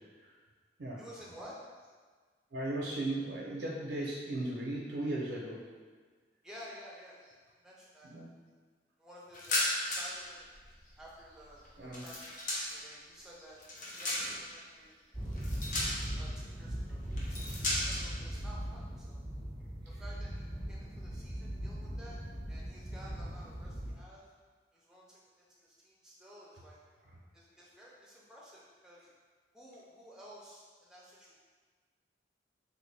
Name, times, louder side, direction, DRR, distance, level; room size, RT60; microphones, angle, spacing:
voice 1, 1.0-1.6 6.4-7.4 7.6-8.1 9.0-9.7 9.9-10.5 11.0-13.6 14.0-15.3 16.2-19.3 19.9-22.2 22.5-24.3 24.7-25.2 25.6-26.8 27.3-29.1 29.5-31.3, equal, 5° right, -6 dB, 0.6 m, -53 dB
voice 2, 2.5-5.6 8.0-8.3 11.8-12.0, right 1 dB, 90° right, -4 dB, 0.6 m, -36 dB
sound 1, 9.3-10.2 10.5-12.9 13.4-14.6 15.3-16.3 17.1-18.1, left 1 dB, 45° left, 0.6 m, -35 dB
sound 2, 15.1-23.9, equal, 30° left, 1.1 m, -39 dB
3.3 x 2.6 x 3.2 m, 1.5 s
head